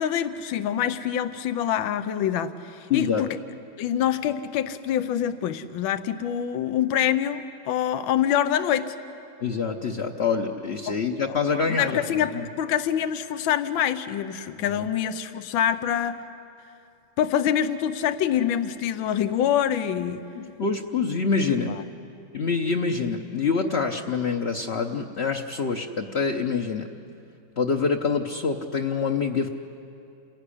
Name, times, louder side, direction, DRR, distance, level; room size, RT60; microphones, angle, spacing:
voice 1, 0.0-3.4 3.8-9.0 10.9-11.0 11.3-11.4 11.7-16.2 17.2-20.2 21.6-21.8, left 10 dB, 80° left, 10 dB, 1.6 m, -25 dB
voice 2, 2.9-3.2 9.4-12.4 14.7-14.9 20.3-21.7 22.3-26.9 27.6-29.5, left 5 dB, 45° left, 2 dB, 0.9 m, -26 dB
28.5 x 18.0 x 10.0 m, 2.8 s
omnidirectional pair, 2.1 m